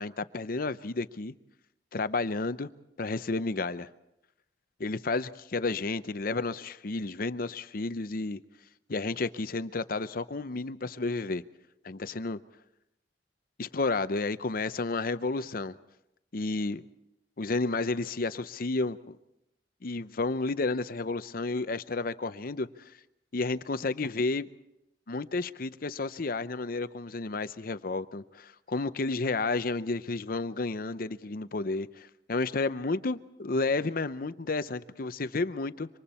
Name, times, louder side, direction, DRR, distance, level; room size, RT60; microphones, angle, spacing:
voice 1, 0.0-1.3 1.9-2.7 3.0-3.9 4.8-8.4 8.9-11.4 11.8-12.4 13.6-15.8 16.3-16.8 17.4-19.2 19.8-22.7 23.3-24.5 25.1-35.9, left 3 dB, 55° left, 13 dB, 0.7 m, -31 dB
27.0 x 25.0 x 4.3 m, 0.85 s
head